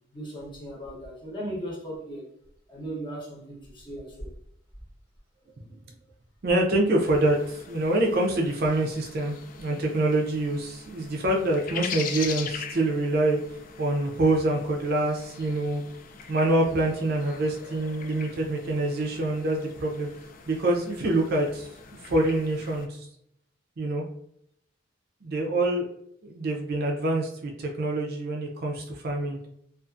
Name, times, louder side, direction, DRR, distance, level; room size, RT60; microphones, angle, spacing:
voice 1, 0.1-2.3 2.7-4.3, right 1 dB, 25° left, -4 dB, 0.9 m, -37 dB
voice 2, 6.4-13.4 13.8-15.8 16.3-20.1 20.5-21.7 22.0-23.0 23.8-24.0 25.2-25.9 26.2-29.4, right 1 dB, 55° right, 1 dB, 0.5 m, -26 dB
sound 1, 7.0-22.9, left 6 dB, 45° left, 0.3 m, -42 dB
2.5 x 2.4 x 2.4 m, 0.73 s
head